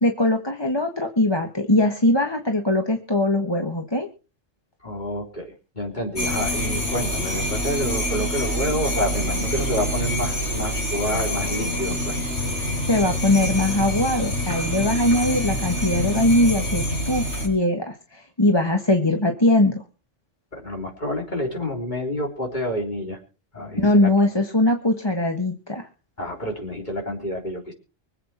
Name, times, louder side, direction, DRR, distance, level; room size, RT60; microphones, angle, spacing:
voice 1, 0.0-4.1 12.9-19.8 23.8-25.9, left 1 dB, 20° left, 3 dB, 1.4 m, -21 dB
voice 2, 4.8-12.2 20.5-23.2 23.5-24.1 26.2-27.7, equal, 35° left, 1 dB, 3.9 m, -28 dB
sound 1, 6.2-17.5, equal, 60° left, 4.8 m, -26 dB
24.5 x 8.3 x 4.4 m, 0.34 s
omnidirectional pair, 1.3 m